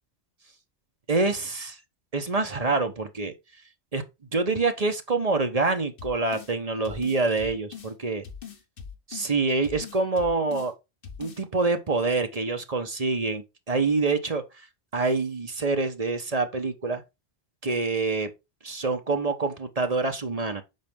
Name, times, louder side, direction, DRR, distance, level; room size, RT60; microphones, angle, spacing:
voice 1, 1.1-1.8 2.1-3.3 3.9-4.0 4.3-8.2 9.1-10.7 11.2-14.4 14.9-17.0 17.6-18.3 18.6-20.6, right 3 dB, 35° right, 1.1 m, -26 dB
sound 1, 6.0-6.5 6.9-7.9 8.2-9.3 9.6-10.7 11.0-11.4, left 7 dB, 60° left, 1.3 m, -41 dB
7.7 x 5.0 x 3.6 m
omnidirectional pair, 1.1 m